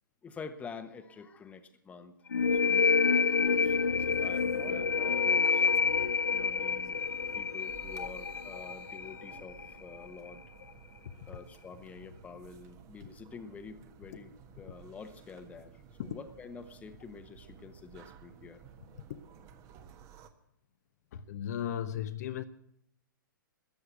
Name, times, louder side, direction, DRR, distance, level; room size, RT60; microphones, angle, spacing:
voice 1, 0.2-2.1 2.5-5.7 6.3-7.0 7.3-10.4 11.3-18.6, left 5 dB, 10° left, 1.1 m, -48 dB
sound 1, 2.3-9.7, left 5 dB, 75° left, 0.6 m, -28 dB
sound 2, 2.4-20.3, right 7 dB, 25° right, 1.3 m, -53 dB
voice 2, 21.1-22.4, left 10 dB, 50° left, 0.9 m, -35 dB
14.0 x 9.6 x 9.3 m
figure-of-eight pair, 115°, 11 cm